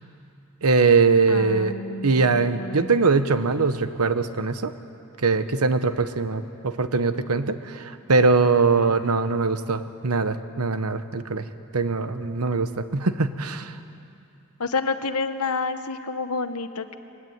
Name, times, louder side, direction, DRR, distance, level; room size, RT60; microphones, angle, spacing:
voice 1, 0.6-1.7 2.0-4.7 5.2-11.4 11.7-13.7, right 4 dB, 90° right, 10 dB, 1.1 m, -22 dB
voice 2, 1.3-3.1 14.6-17.0, left 4 dB, 85° left, 10 dB, 1.1 m, -29 dB
22.0 x 16.5 x 9.4 m, 2.6 s
head